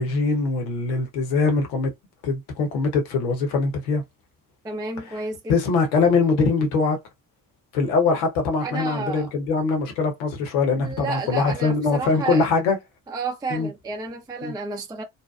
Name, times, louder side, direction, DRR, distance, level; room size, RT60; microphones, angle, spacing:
voice 1, 0.0-1.9 2.2-4.0 5.5-7.0 7.7-12.8 13.5-13.7 14.4-14.5, left 4 dB, 80° left, 0.9 m, -22 dB
voice 2, 4.6-5.6 8.6-9.3 10.7-12.5 13.1-15.0, right 3 dB, 10° right, 0.4 m, -31 dB
2.7 x 2.1 x 2.3 m
hypercardioid pair, 45°, 47 cm